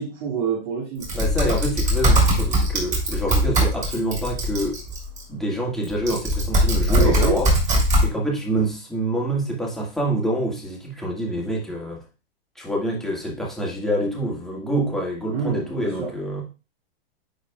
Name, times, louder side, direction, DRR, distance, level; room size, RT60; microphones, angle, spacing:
voice 1, 0.0-1.2 6.9-7.4 15.3-16.2, right 6 dB, 55° right, -4 dB, 2.3 m, -26 dB
Typing, 1.0-5.2 5.8-8.1, equal, 25° right, 3.1 m, -21 dB
voice 2, 1.1-4.8 5.3-7.6 8.0-12.0 12.6-16.4, right 1 dB, ahead, -3 dB, 1.8 m, -26 dB
10.5 x 3.9 x 2.3 m, 0.31 s
hypercardioid pair, 125°, 31 cm